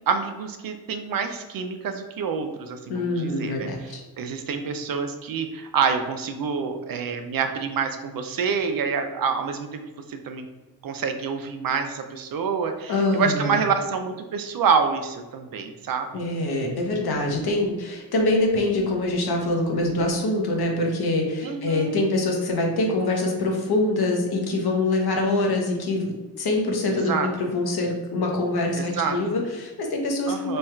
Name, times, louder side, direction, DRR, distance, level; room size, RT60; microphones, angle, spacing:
voice 1, 0.1-3.7 4.2-9.8 10.1-10.5 10.8-16.2 21.4-22.0 26.9-27.3 28.8-29.2 30.3-30.6, right 6 dB, 60° right, 7 dB, 0.5 m, -27 dB
voice 2, 2.9-4.0 12.9-13.6 16.1-30.6, left 2 dB, 70° left, 1 dB, 0.9 m, -24 dB
3.2 x 2.3 x 4.3 m, 1.2 s
wide cardioid pair, 110°, 40 cm